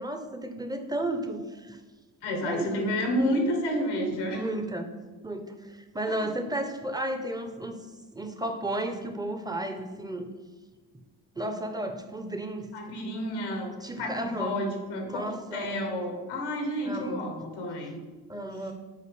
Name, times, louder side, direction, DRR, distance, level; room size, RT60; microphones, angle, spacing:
voice 1, 0.0-1.8 2.4-2.9 4.3-4.9 5.2-7.8 8.1-10.3 11.3-12.7 13.8-14.6 15.0-15.9 16.9-17.2 18.3-18.7, right 1 dB, 10° right, 6 dB, 1.0 m, -33 dB
voice 2, 2.2-4.4 6.1-6.3 12.7-13.7 14.0-15.2 15.5-18.0, equal, 80° left, 3 dB, 1.5 m, -30 dB
5.8 x 4.3 x 6.4 m, 1.3 s
hypercardioid pair, 45°, 46 cm